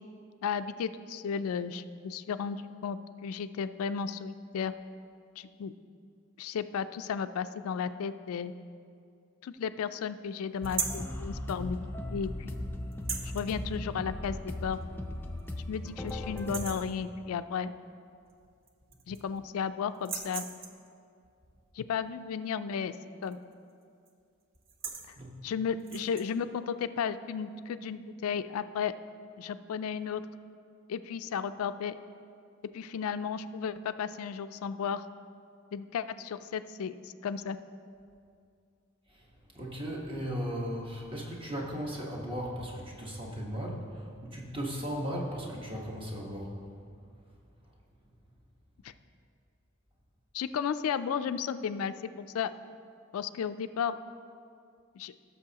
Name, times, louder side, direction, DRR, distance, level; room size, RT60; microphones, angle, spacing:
voice 1, 0.4-4.7 5.4-5.7 6.4-8.5 9.4-11.8 12.1-12.5 13.3-14.8 15.7-17.7 19.1-20.4 21.7-22.9 23.2-23.4 25.4-28.9 29.4-30.2 30.9-32.0 32.7-35.0 35.7-37.6 48.8-48.9 50.3-52.5 53.1-54.0 55.0-55.1, left 6 dB, 85° left, 12 dB, 0.3 m, -34 dB
sound 1, 10.6-16.7, left 1 dB, 10° left, 0.4 m, -38 dB
sound 2, 10.6-11.1 12.9-13.5 14.8-14.9 15.4-15.5 15.9-16.1 16.4-16.9 18.3-18.4 18.7-19.4 19.9-20.9 23.2-23.5 23.8-24.1 24.5-25.1 25.8-26.3, right 6 dB, 60° right, 0.8 m, -38 dB
voice 2, 39.1-46.5, equal, 25° right, -3 dB, 1.2 m, -37 dB
16.0 x 6.8 x 2.9 m, 2.4 s
head